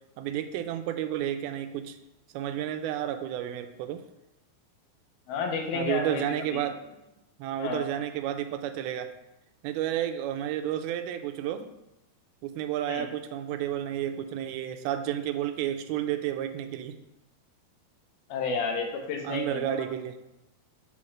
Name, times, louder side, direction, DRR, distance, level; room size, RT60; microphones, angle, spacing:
voice 1, 0.2-2.0 2.3-4.0 5.7-6.9 7.4-9.1 9.6-11.7 12.4-17.0 19.2-20.2, right 11 dB, 85° right, 8 dB, 2.5 m, -31 dB
voice 2, 5.3-6.2 6.5-6.6 7.6-7.9 12.9-13.1 18.3-19.8, left 4 dB, 80° left, 2 dB, 2.9 m, -31 dB
7.0 x 4.3 x 6.0 m, 0.94 s
omnidirectional pair, 4.4 m